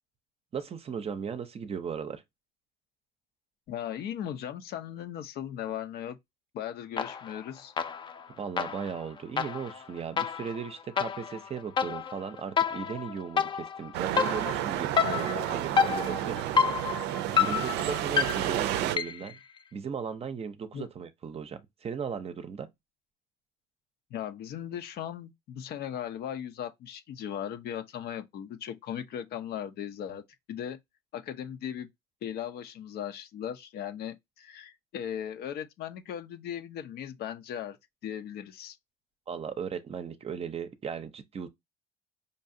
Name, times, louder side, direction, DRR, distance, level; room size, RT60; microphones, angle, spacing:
voice 1, 0.5-2.2 8.4-16.7 17.4-19.4 19.7-22.7 39.3-41.5, right 6 dB, 35° right, 0.6 m, -37 dB
voice 2, 3.7-6.2 6.5-7.7 20.7-20.9 24.1-30.2 30.5-30.8 31.1-31.9 32.2-37.8 38.0-38.8, left 9 dB, 70° left, 0.7 m, -37 dB
sound 1, 7.0-7.4 7.8-19.4, left 7 dB, 30° left, 0.5 m, -30 dB
sound 2, 13.9-19.0, right 13 dB, 85° right, 0.4 m, -31 dB
5.2 x 2.4 x 2.7 m
cardioid pair, 110°, 17 cm